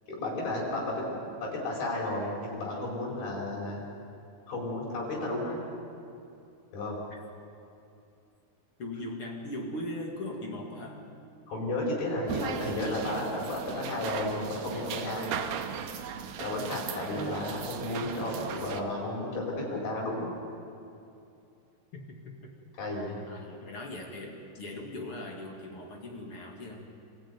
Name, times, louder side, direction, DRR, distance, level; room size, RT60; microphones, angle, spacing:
voice 1, 0.1-3.8 4.5-5.6 6.7-7.0 11.5-15.3 16.4-20.3 22.8-23.2, left 1 dB, 70° left, -4 dB, 6.6 m, -33 dB
voice 2, 8.8-11.1 21.9-22.5 23.3-26.9, left 1 dB, 40° left, 0 dB, 2.6 m, -39 dB
sound 1, 12.3-18.8, right 8 dB, 75° right, 2.8 m, -37 dB
25.5 x 14.5 x 9.4 m, 2.6 s
omnidirectional pair, 4.4 m